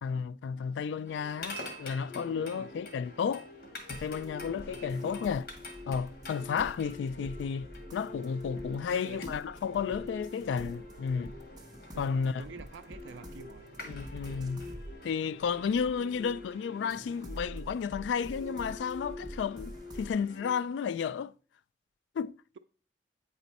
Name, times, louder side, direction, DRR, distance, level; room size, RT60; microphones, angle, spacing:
voice 1, 0.0-3.5 3.9-5.5 5.9-11.3 12.0-12.4 13.9-14.7 15.0-21.3 22.2-22.4, left 6 dB, 85° left, 0.3 m, -32 dB
sound 1, 1.1-20.6, left 2 dB, 55° left, 1.9 m, -46 dB
voice 2, 2.3-2.7 4.7-5.2 8.9-9.2 11.9-13.7, right 5 dB, 90° right, 0.4 m, -48 dB
sound 2, 3.9-16.5 16.9-20.2, equal, 25° right, 0.8 m, -47 dB
9.0 x 4.3 x 4.1 m
head